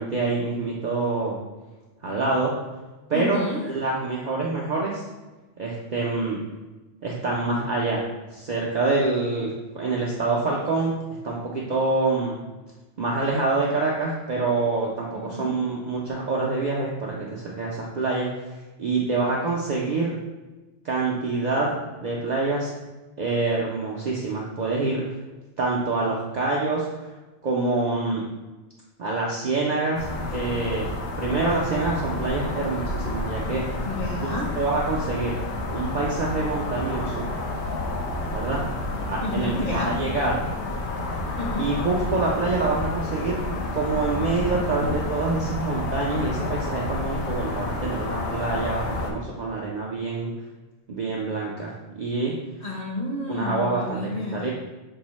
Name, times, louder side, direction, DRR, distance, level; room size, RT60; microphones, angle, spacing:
voice 1, 0.0-1.4 2.0-2.5 3.1-5.0 5.6-6.4 7.0-8.0 8.3-10.9 11.2-12.3 13.0-18.3 18.8-20.1 20.8-21.7 22.0-22.7 23.2-25.0 25.6-26.9 27.4-28.2 29.0-30.9 31.2-33.6 34.2-35.4 35.7-37.3 38.3-38.6 39.1-40.5 41.6-43.4 43.7-50.3 50.9-52.3 53.3-54.0 54.3-54.5, right 3 dB, 55° right, -4 dB, 0.5 m, -26 dB
voice 2, 3.1-3.6 15.1-15.5 33.8-34.5 39.2-39.9 41.4-41.7 52.6-54.5, left 1 dB, 45° left, -3 dB, 0.9 m, -30 dB
sound 1, 29.9-49.1, left 2 dB, 75° left, 0.8 m, -30 dB
5.3 x 2.0 x 3.0 m, 1.1 s
omnidirectional pair, 1.2 m